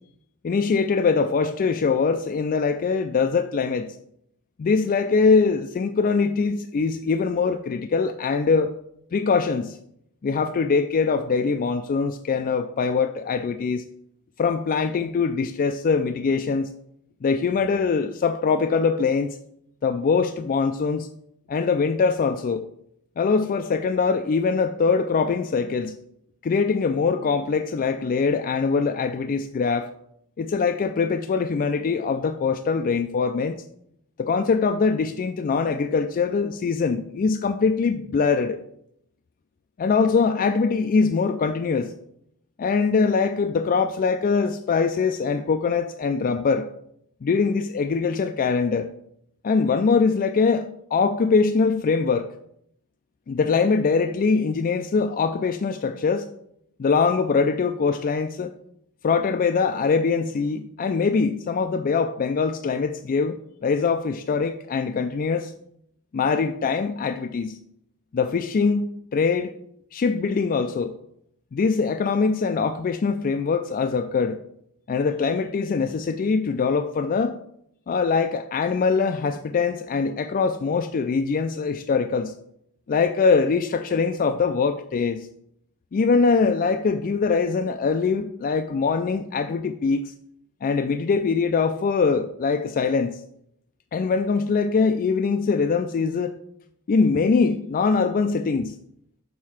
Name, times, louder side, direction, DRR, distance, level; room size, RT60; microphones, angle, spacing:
voice 1, 0.4-3.9 4.6-8.7 9.1-9.8 10.2-13.8 14.4-16.7 17.2-19.4 19.8-21.1 21.5-22.7 23.2-26.0 26.4-29.9 30.4-33.6 34.2-38.6 39.8-41.9 42.6-46.7 47.2-48.9 49.4-52.3 53.3-56.3 56.8-58.5 59.0-65.5 66.1-67.6 68.1-69.5 69.9-70.9 71.5-74.4 74.9-77.4 77.9-82.3 82.9-85.3 85.9-90.1 90.6-93.1 93.9-96.4 96.9-98.7, left 5 dB, 40° left, 0.3 m, -23 dB
6.5 x 3.6 x 5.8 m
head